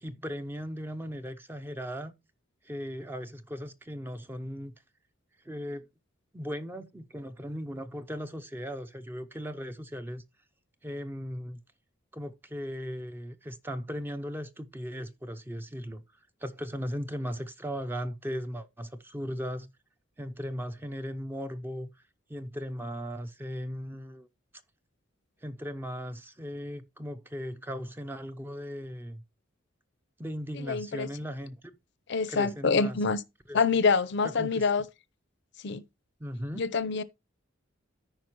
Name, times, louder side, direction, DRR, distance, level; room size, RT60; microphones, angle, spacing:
voice 1, 0.0-2.1 2.6-4.7 5.4-5.8 6.3-10.2 10.8-11.6 12.1-16.0 16.4-19.7 20.2-21.9 22.3-24.3 25.4-29.2 30.2-31.7 32.3-33.0 33.5-33.6 34.2-34.6 36.2-36.7, equal, 10° right, 0.5 m, -37 dB
voice 2, 30.7-31.1 32.1-33.2 33.5-34.8 35.6-35.8 36.6-37.0, left 4 dB, 60° left, 0.6 m, -26 dB
13.5 x 5.1 x 2.9 m
head